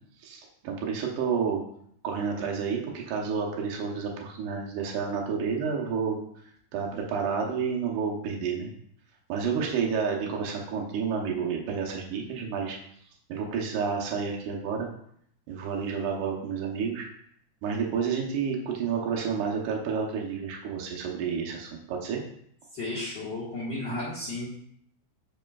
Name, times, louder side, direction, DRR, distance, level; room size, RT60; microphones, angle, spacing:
voice 1, 0.2-1.6 2.0-6.2 6.7-8.7 9.3-12.8 13.3-14.9 15.5-17.1 17.6-22.2, right 6 dB, 80° right, -1 dB, 2.5 m, -30 dB
voice 2, 22.7-24.6, left 2 dB, 45° left, -8 dB, 1.6 m, -33 dB
7.5 x 5.5 x 2.3 m, 0.69 s
omnidirectional pair, 3.6 m